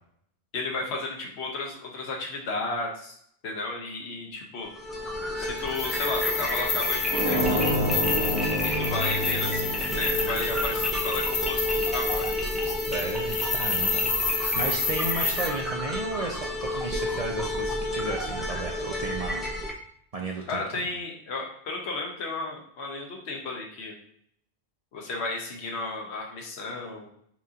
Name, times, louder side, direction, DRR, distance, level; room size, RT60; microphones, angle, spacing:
voice 1, 0.5-3.2 3.4-4.7 5.4-7.6 8.6-12.5 20.5-24.0 24.9-27.1, left 3 dB, 80° left, 0 dB, 1.1 m, -33 dB
sound 1, 4.7-19.7, left 1 dB, ahead, 0.5 m, -31 dB
sound 2, 5.7-15.5, left 4 dB, 50° left, 0.7 m, -30 dB
sound 3, 7.1-11.8, equal, 70° right, 1.3 m, -29 dB
voice 2, 12.7-19.4 20.1-20.9, right 3 dB, 50° right, -1 dB, 0.4 m, -34 dB
5.8 x 2.5 x 2.7 m, 0.68 s
omnidirectional pair, 1.1 m